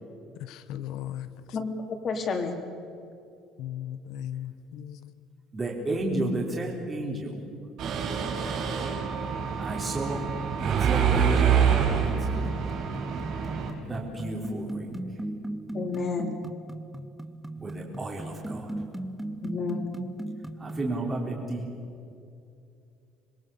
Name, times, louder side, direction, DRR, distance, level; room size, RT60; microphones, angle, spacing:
voice 1, 0.4-1.3 3.6-5.1, left 11 dB, 70° left, 12 dB, 1.2 m, -37 dB
voice 2, 1.5-2.6 15.7-16.4 19.4-20.0, left 4 dB, 35° left, 4 dB, 3.4 m, -31 dB
voice 3, 5.5-7.4 9.6-10.3 10.6-12.5 13.8-15.0 17.5-18.7 20.6-21.6, right 2 dB, 20° right, -1 dB, 3.9 m, -32 dB
Mechanisms, 7.8-13.7, right 7 dB, 55° right, 5.3 m, -26 dB
sound 1, 12.4-20.9, right 1 dB, 5° right, 1.0 m, -37 dB
26.5 x 21.5 x 7.1 m, 2.6 s
cardioid pair, 145°, 0 cm